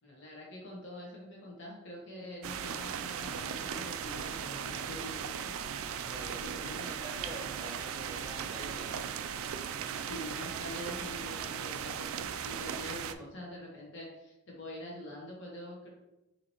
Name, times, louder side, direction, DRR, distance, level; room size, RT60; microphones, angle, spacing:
voice 1, 0.0-5.5 6.4-6.9 9.8-15.9, left 1 dB, 55° left, -3 dB, 1.2 m, -45 dB
sound 1, 2.4-13.1, right 8 dB, 70° right, 0.3 m, -37 dB
voice 2, 5.9-9.0, equal, 15° right, -2 dB, 0.9 m, -46 dB
4.8 x 2.8 x 2.9 m, 0.94 s
head